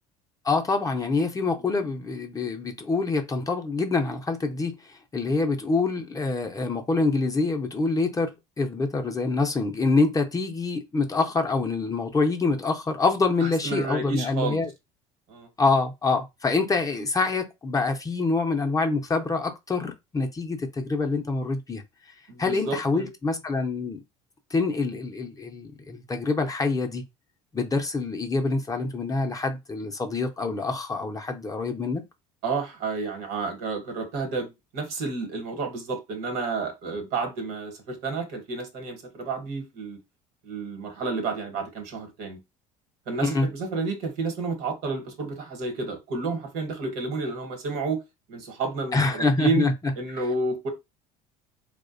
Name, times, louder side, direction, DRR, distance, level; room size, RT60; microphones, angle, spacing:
voice 1, 0.4-4.8 5.1-14.7 15.6-21.8 22.4-24.0 24.5-27.0 27.5-32.0 43.2-43.5 48.9-49.9, left 3 dB, 20° left, 0.5 m, -26 dB
voice 2, 13.4-14.6 15.3-15.5 22.3-23.1 32.4-40.0 40.4-42.4 43.1-48.0 48.3-49.6 50.0-50.7, right 3 dB, 70° right, 1.0 m, -30 dB
2.4 x 2.1 x 2.4 m
hypercardioid pair, 75°, 16 cm